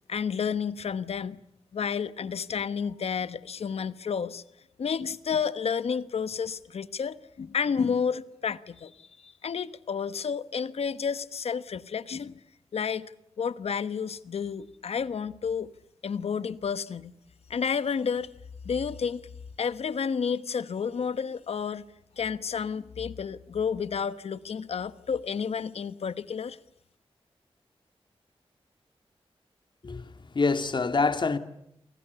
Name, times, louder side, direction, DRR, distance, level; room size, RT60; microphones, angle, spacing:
voice 1, 0.1-1.4 1.7-4.4 4.8-12.4 12.7-13.1 13.4-15.7 16.0-17.2 17.5-18.3 18.6-19.2 19.6-21.8 22.2-26.6, left 6 dB, 85° left, 1.1 m, -31 dB
voice 2, 29.8-31.4, left 4 dB, 50° left, 2.2 m, -26 dB
29.5 x 24.5 x 7.0 m
wide cardioid pair, 110°, 10 cm